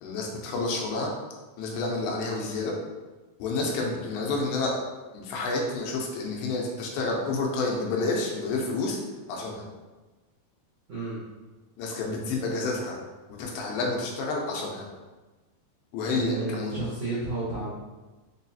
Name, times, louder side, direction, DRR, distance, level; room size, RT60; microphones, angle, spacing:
voice 1, 0.0-1.1 1.6-2.8 3.4-4.8 5.1-9.0 9.3-9.6 11.8-13.0 13.4-14.9 15.9-16.8, left 3 dB, 85° left, 0 dB, 2.5 m, -29 dB
voice 2, 16.1-17.7, right 2 dB, 75° right, -9 dB, 1.5 m, -32 dB
5.9 x 2.3 x 2.7 m, 1.2 s
omnidirectional pair, 4.4 m